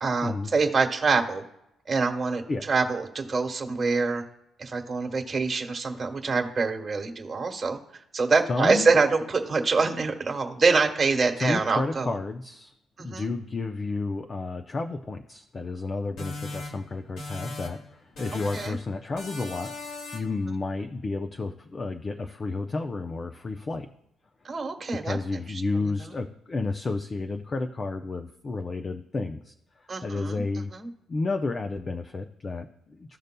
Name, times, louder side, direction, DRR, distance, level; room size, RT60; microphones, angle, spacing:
voice 1, 0.0-1.4 1.9-4.2 4.6-7.8 8.1-12.1 13.0-13.3 18.5-18.7 24.4-25.2 25.8-26.1 29.9-30.4 30.7-30.9, right 4 dB, 35° right, 3 dB, 1.3 m, -25 dB
voice 2, 8.5-8.9 11.4-12.7 13.0-19.7 20.1-23.9 25.0-30.7 31.1-33.2, left 3 dB, 35° left, 5 dB, 0.5 m, -31 dB
sound 1, 16.2-17.9 18.2-18.8 19.2-20.4, left 3 dB, 70° left, 2.4 m, -39 dB
15.0 x 5.2 x 2.2 m, 0.80 s
cardioid pair, 90°, 0 cm